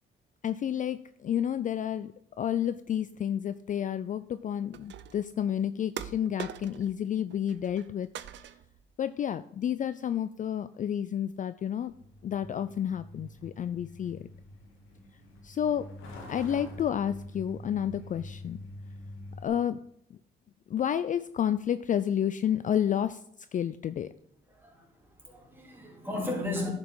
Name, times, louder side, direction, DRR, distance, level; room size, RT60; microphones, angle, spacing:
voice 1, 0.4-2.1 2.4-8.1 9.0-11.9 12.2-14.3 15.4-15.9 16.3-18.6 19.4-19.8 20.7-23.2 23.5-24.1, left 9 dB, 40° left, 13 dB, 0.4 m, -30 dB
sound 1, 4.7-5.3 6.0-7.0 7.3-7.9 8.2-8.8, right 10 dB, 65° right, 0.6 m, -42 dB
Truck, 11.9-19.5, left 1 dB, 85° left, 2.1 m, -46 dB
voice 2, 24.5-26.7, left 2 dB, 10° right, -1 dB, 3.0 m, -35 dB
11.0 x 5.2 x 4.7 m, 0.70 s
cardioid pair, 90°, 20 cm